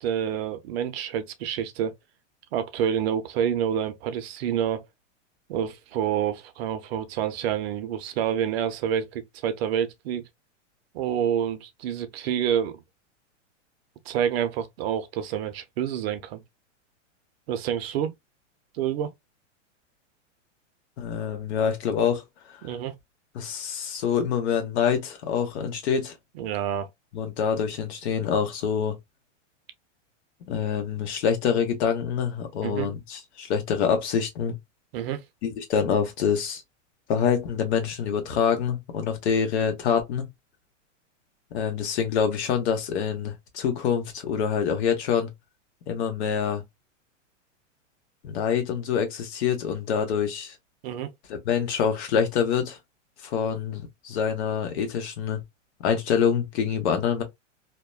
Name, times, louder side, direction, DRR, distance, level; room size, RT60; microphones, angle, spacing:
voice 1, 0.0-1.9 2.5-4.8 5.5-10.3 10.9-12.8 14.1-16.4 17.5-18.1 18.7-19.1 22.6-22.9 26.3-26.9 32.6-32.9 34.9-35.2 50.8-51.1, right 9 dB, 55° right, 0.6 m, -28 dB
voice 2, 21.0-22.2 23.3-26.1 27.1-28.9 30.5-34.5 35.4-36.6 37.1-40.3 41.5-45.3 45.9-46.6 48.2-50.6 51.3-52.8 53.2-55.4 55.8-57.2, left 7 dB, 60° left, 1.1 m, -26 dB
2.8 x 2.2 x 2.2 m
hypercardioid pair, 130°, 37 cm